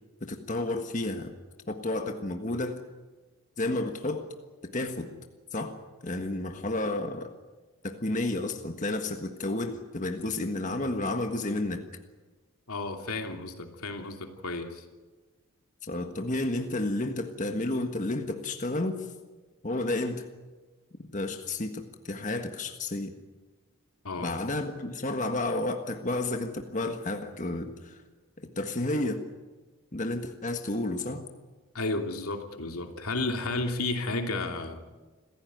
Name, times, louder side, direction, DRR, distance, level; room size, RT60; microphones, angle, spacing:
voice 1, 0.2-1.3 1.7-2.8 3.6-4.3 4.6-5.1 5.5-7.3 7.8-11.8 15.8-19.1 19.6-20.2 21.1-23.2 24.2-28.0 28.4-29.2 29.9-31.2, left 2 dB, 35° left, 5 dB, 1.5 m, -31 dB
voice 2, 12.7-14.8 24.0-24.3 31.7-34.8, left 2 dB, 85° left, 4 dB, 2.8 m, -32 dB
27.0 x 15.5 x 9.4 m, 1.3 s
head